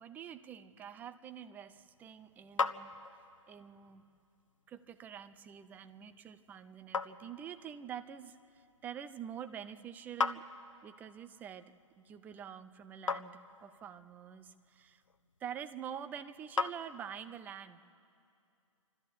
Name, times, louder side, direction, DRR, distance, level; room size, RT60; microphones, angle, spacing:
voice 1, 0.0-2.9 3.5-4.0 4.7-10.4 10.8-15.0 15.4-17.8, right 9 dB, 10° right, 12 dB, 0.4 m, -46 dB
sound 1, 1.6-17.4, left 4 dB, 70° left, 0.8 m, -42 dB
27.5 x 13.0 x 8.3 m, 2.5 s
figure-of-eight pair, 125°, 17 cm